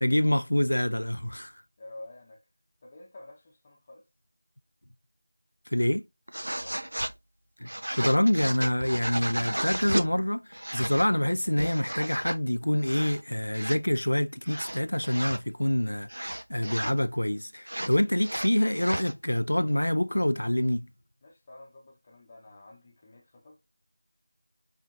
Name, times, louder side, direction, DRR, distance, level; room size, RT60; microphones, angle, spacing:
voice 1, 0.0-1.6 5.7-6.1 7.6-20.9, left 1 dB, 80° left, 0.3 m, -26 dB
voice 2, 1.8-2.4 2.8-4.0 6.6-6.9 21.2-23.7, left 2 dB, 20° left, 0.8 m, -49 dB
sound 1, 6.3-7.1 7.7-10.1 10.5-11.1 11.5-12.4 12.8-13.2 13.5-13.8 14.4-15.4 16.1-17.0 17.7-19.1, right 1 dB, 75° right, 0.4 m, -33 dB
4.4 x 3.3 x 2.5 m
figure-of-eight pair, 175°, 0 cm